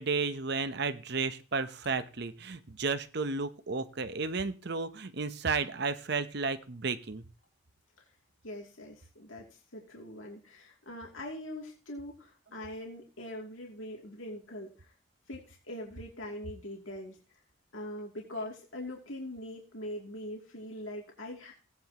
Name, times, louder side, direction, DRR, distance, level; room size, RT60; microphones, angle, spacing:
voice 1, 0.0-7.2, right 4 dB, 50° right, 12 dB, 0.8 m, -33 dB
voice 2, 8.4-14.9 15.3-17.2 17.7-21.5, left 1 dB, 75° left, -1 dB, 2.8 m, -42 dB
17.5 x 9.6 x 3.0 m, 0.35 s
head